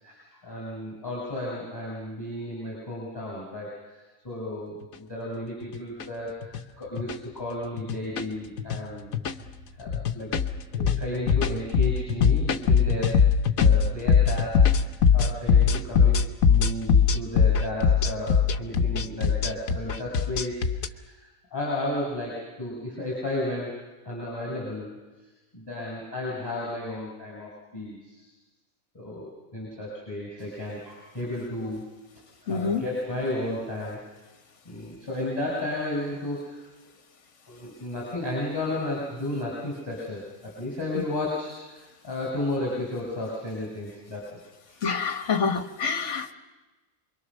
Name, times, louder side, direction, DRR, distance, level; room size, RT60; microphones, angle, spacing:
voice 1, 0.0-9.2 9.8-10.3 10.7-13.2 13.6-14.7 15.1-24.9 25.5-28.2 28.9-31.8 32.4-34.0 34.7-36.6 37.5-44.2 44.7-44.8 45.1-45.5, left 1 dB, 15° left, -5 dB, 7.4 m, -33 dB
sound 1, 4.8-4.9 5.6-6.0 6.4-6.6 7.0-7.2 7.8-8.3 8.6-8.8 9.1-9.5 9.9-20.9, left 6 dB, 75° left, 1.4 m, -21 dB
voice 2, 32.5-32.8 40.9-41.0 44.8-46.3, left 5 dB, 60° left, 8 dB, 1.8 m, -27 dB
28.0 x 23.0 x 6.5 m, 1.2 s
omnidirectional pair, 1.4 m